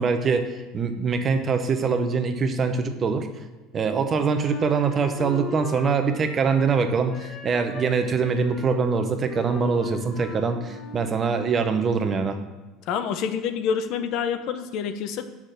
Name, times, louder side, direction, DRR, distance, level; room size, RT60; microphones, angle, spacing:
voice 1, 0.0-3.3 3.7-12.4, right 5 dB, 30° right, 7 dB, 0.9 m, -23 dB
Wind instrument woodwind instrument, 4.4-6.8 7.1-11.2, left 3 dB, 40° left, 1.1 m, -39 dB
voice 2, 12.9-15.3, left 7 dB, 55° left, 10 dB, 0.7 m, -27 dB
6.3 x 6.0 x 6.6 m, 1.2 s
supercardioid pair, 125°, 0 cm